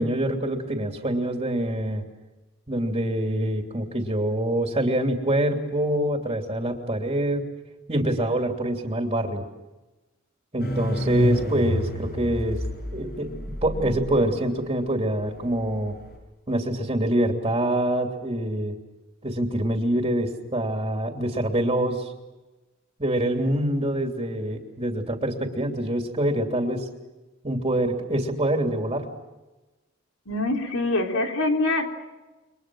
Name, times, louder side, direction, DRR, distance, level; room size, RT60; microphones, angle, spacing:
voice 1, 0.0-2.0 2.7-7.5 7.9-9.4 10.5-12.6 12.9-13.3 13.6-16.0 16.5-18.8 19.2-22.1 23.0-26.9 27.4-29.1, right 1 dB, 25° right, 3 dB, 2.9 m, -25 dB
sound 1, 10.6-16.2, left 1 dB, 50° left, 7.3 m, -29 dB
voice 2, 30.3-31.9, left 2 dB, 90° left, 3 dB, 3.8 m, -24 dB
29.5 x 24.5 x 6.3 m, 1.1 s
head